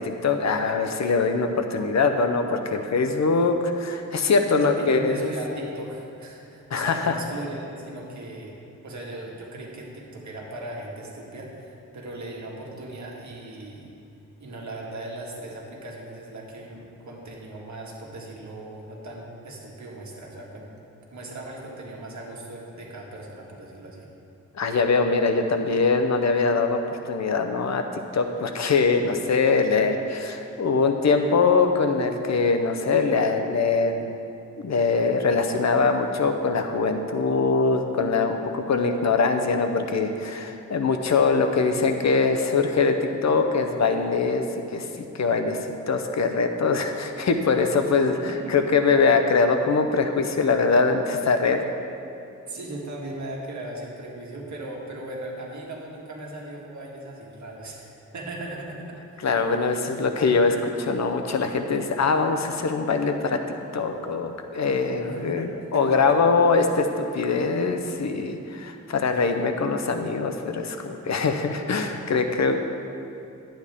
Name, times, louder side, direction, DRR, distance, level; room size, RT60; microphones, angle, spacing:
voice 1, 0.0-5.3 6.7-7.2 24.5-34.2 34.6-45.6 45.9-51.7 59.2-63.4 63.7-72.6, left 4 dB, 60° left, 6 dB, 0.7 m, -23 dB
voice 2, 4.5-8.6 8.8-13.9 14.4-20.7 21.1-24.1 48.1-48.8 52.5-57.9 58.1-59.2 65.0-66.2, right 1 dB, 65° right, -2 dB, 1.8 m, -38 dB
11.5 x 8.9 x 3.6 m, 2.6 s
wide cardioid pair, 110°, 31 cm